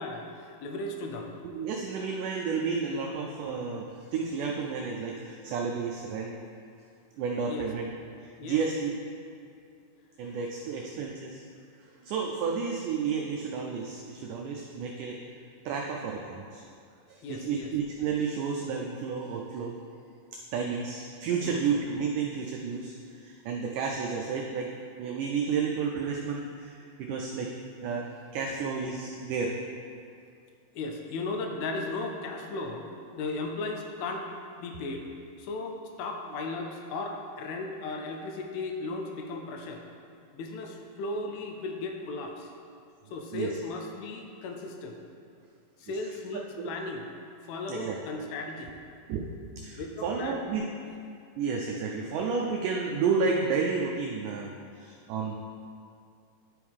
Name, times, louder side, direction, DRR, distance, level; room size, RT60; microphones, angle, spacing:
voice 1, 0.0-1.3 7.5-7.7 8.4-8.7 17.2-17.7 21.4-21.6 30.8-32.9 33.2-34.3 34.6-35.1 35.4-39.8 40.3-42.5 43.1-45.0 45.8-47.1 47.4-48.7 49.7-50.4, left 3 dB, 90° left, 2 dB, 2.5 m, -36 dB
voice 2, 1.4-6.3 7.2-7.9 8.2-9.0 10.2-11.4 12.0-15.2 15.7-16.6 17.1-19.8 20.5-24.7 25.0-27.5 27.8-28.1 28.3-29.5 43.3-43.6 45.8-45.9 46.3-46.7 47.7-48.0 49.1-49.2 49.6-50.6 51.4-55.3, right 5 dB, 85° right, 0 dB, 1.8 m, -31 dB
10.5 x 3.6 x 4.7 m, 2.4 s
omnidirectional pair, 4.2 m